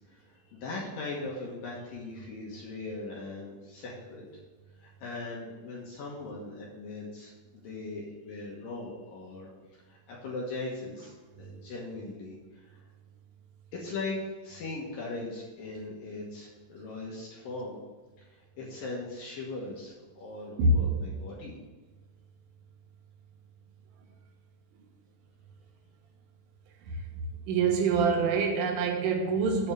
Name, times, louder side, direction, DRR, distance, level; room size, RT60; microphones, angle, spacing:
voice 1, 0.0-4.3 4.8-9.5 9.9-12.8 13.7-17.8 18.2-21.5, left 2 dB, 65° left, -3 dB, 2.3 m, -39 dB
voice 2, 27.5-29.7, right 3 dB, 90° right, 2 dB, 3.8 m, -25 dB
8.1 x 5.3 x 7.5 m, 1.3 s
omnidirectional pair, 5.5 m